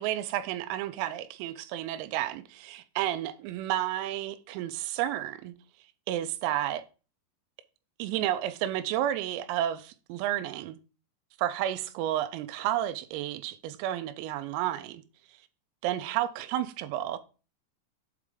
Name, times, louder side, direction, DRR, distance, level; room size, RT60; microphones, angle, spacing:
voice 1, 0.0-5.6 6.1-6.8 8.0-10.8 11.4-15.0 15.8-17.2, right 12 dB, 85° right, 3.4 m, -31 dB
8.4 x 3.5 x 5.0 m
omnidirectional pair, 5.9 m